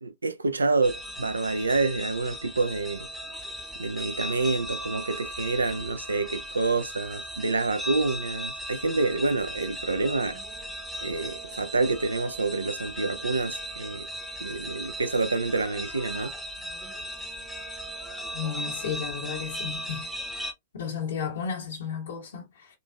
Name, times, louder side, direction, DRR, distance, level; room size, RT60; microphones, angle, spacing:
voice 1, 0.0-3.1 3.8-10.4 11.0-14.1 14.4-16.3, right 3 dB, 90° right, 0.3 m, -27 dB
sound 1, 0.8-20.5, equal, ahead, 0.7 m, -37 dB
voice 2, 18.3-20.1 20.7-22.7, left 7 dB, 70° left, 1.2 m, -33 dB
3.7 x 2.4 x 2.2 m
hypercardioid pair, 105°, 0 cm